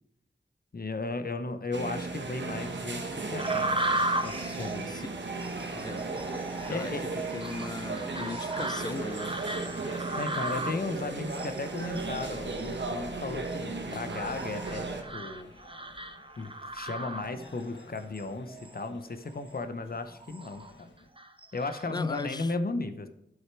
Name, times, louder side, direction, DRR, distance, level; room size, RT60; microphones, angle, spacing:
voice 1, 0.7-4.9 6.7-7.1 10.2-15.5 16.4-20.9 21.5-23.1, left 3 dB, 55° left, 0.8 m, -35 dB
sound 1, 1.7-15.0, right 3 dB, 90° right, 1.1 m, -36 dB
sound 2, 3.4-17.7 18.2-18.8 19.3-19.5 20.0-20.7 21.2-22.4, right 2 dB, 30° right, 0.8 m, -36 dB
sound 3, 5.4-21.1, left 2 dB, 85° left, 1.2 m, -52 dB
voice 2, 5.7-6.1 6.7-7.0 7.3-9.7 21.9-22.5, left 3 dB, 25° left, 0.4 m, -38 dB
9.1 x 6.5 x 4.5 m
wide cardioid pair, 50°, 18 cm